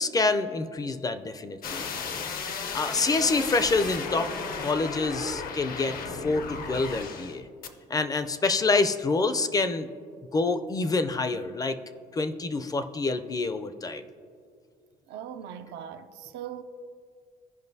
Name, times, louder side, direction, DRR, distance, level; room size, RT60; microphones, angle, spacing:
voice 1, 0.0-1.9 2.7-7.4 7.9-9.9 10.3-11.8 12.1-14.0, left 3 dB, 20° left, 0.4 m, -27 dB
sound 1, 1.6-7.4 7.6-7.7, left 5 dB, 60° left, 0.7 m, -35 dB
voice 2, 15.1-16.6, right 9 dB, 80° right, 0.5 m, -40 dB
15.5 x 5.2 x 2.7 m
cardioid pair, 110°, 17 cm